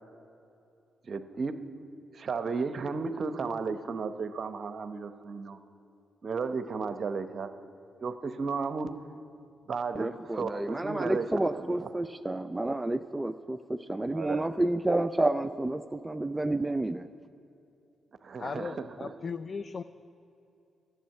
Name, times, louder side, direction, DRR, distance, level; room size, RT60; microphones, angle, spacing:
voice 1, 1.1-1.6 2.1-5.6 6.2-7.5 8.0-8.9 9.7-11.3 11.5-11.9 14.1-14.5 18.2-19.1, right 4 dB, 55° right, 10 dB, 0.8 m, -34 dB
voice 2, 10.0-17.1, right 2 dB, 15° right, 9 dB, 0.5 m, -30 dB
voice 3, 18.4-19.8, left 5 dB, 50° left, 13 dB, 0.4 m, -37 dB
11.5 x 7.8 x 10.0 m, 2.7 s
supercardioid pair, 50°, 0 cm